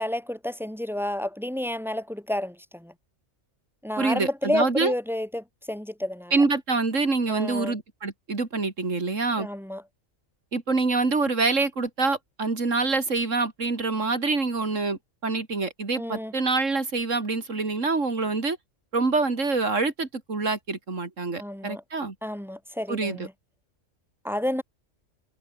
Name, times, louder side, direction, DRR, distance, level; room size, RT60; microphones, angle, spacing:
voice 1, 0.0-2.9 3.8-6.3 7.3-7.8 9.4-9.8 16.0-16.3 21.4-21.8 22.2-23.3 24.2-24.6, left 1 dB, ahead, 1.5 m, -30 dB
voice 2, 4.0-4.9 6.3-9.5 10.5-18.6 18.9-22.1 22.9-23.3, right 3 dB, 70° right, 3.4 m, -26 dB
omnidirectional pair, 1.3 m